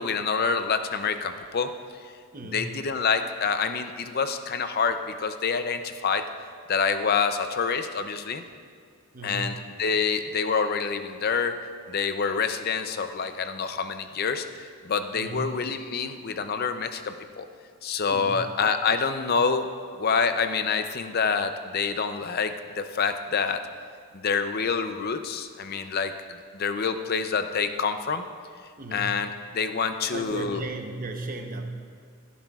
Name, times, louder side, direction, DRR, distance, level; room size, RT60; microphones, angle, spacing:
voice 1, 0.0-1.7 2.5-6.3 6.7-8.4 9.2-11.6 11.9-17.5 17.8-23.6 24.1-26.1 26.5-28.3 28.9-30.6, left 5 dB, 45° left, 9 dB, 0.5 m, -27 dB
voice 2, 2.3-2.7 9.1-9.5 15.1-15.6 18.1-18.5 28.8-29.3 30.1-31.6, right 2 dB, 40° right, 4 dB, 0.8 m, -35 dB
15.5 x 11.5 x 2.4 m, 2.1 s
head